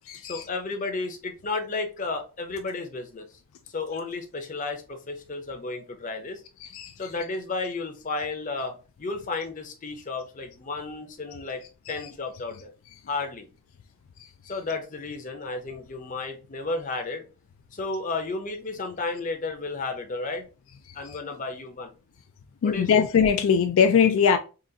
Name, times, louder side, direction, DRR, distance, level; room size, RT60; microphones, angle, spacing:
voice 1, 0.2-3.3 3.7-6.4 7.0-11.6 11.9-12.7 13.1-13.5 14.5-17.3 17.7-20.5 20.9-21.9 22.6-23.0, left 3 dB, 40° left, 0.6 m, -33 dB
voice 2, 6.6-6.9 21.1-21.2 22.6-24.4, left 7 dB, 70° left, 0.3 m, -21 dB
3.8 x 2.4 x 2.7 m
head